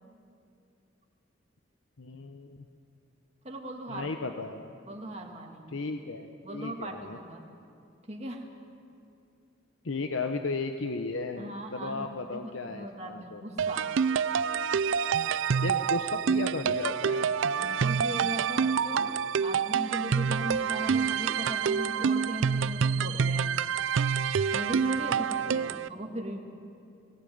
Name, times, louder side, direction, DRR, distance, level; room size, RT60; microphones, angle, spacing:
voice 1, 2.0-2.7 3.9-4.7 5.7-7.2 9.8-13.4 15.6-17.3 25.5-25.7, left 3 dB, 85° left, 6 dB, 0.9 m, -35 dB
voice 2, 3.4-4.1 4.9-5.7 6.4-7.4 8.1-8.5 11.4-13.9 17.5-23.5 24.5-26.4, right 1 dB, 35° right, 2 dB, 2.0 m, -38 dB
sound 1, 13.6-25.9, right 6 dB, 80° right, 0.4 m, -27 dB
18.5 x 18.0 x 9.4 m, 2.5 s
head